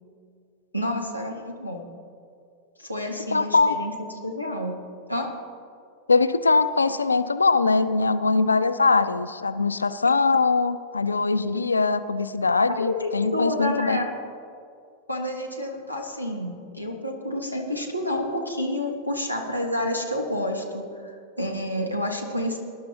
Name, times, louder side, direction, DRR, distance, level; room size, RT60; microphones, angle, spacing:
voice 1, 0.7-1.9 2.8-3.9 4.2-4.8 5.1-5.3 12.7-14.1 15.1-22.6, left 1 dB, 90° right, 3 dB, 1.5 m, -29 dB
voice 2, 3.3-3.7 6.1-14.0, left 4 dB, 75° left, 13 dB, 0.5 m, -22 dB
20.5 x 11.0 x 2.8 m, 2.4 s
figure-of-eight pair, 90°, 0 cm